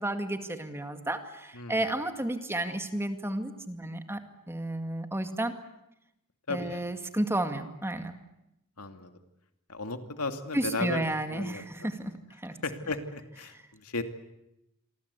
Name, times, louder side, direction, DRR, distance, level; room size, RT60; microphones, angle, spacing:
voice 1, 0.0-4.2 4.5-5.6 6.5-8.2 10.5-12.6, right 1 dB, 10° right, 7 dB, 2.2 m, -32 dB
voice 2, 6.5-6.8 8.8-9.2 9.7-11.0 11.3-11.6 12.6-14.0, left 3 dB, 75° left, 7 dB, 2.6 m, -35 dB
28.5 x 24.0 x 8.3 m, 0.86 s
head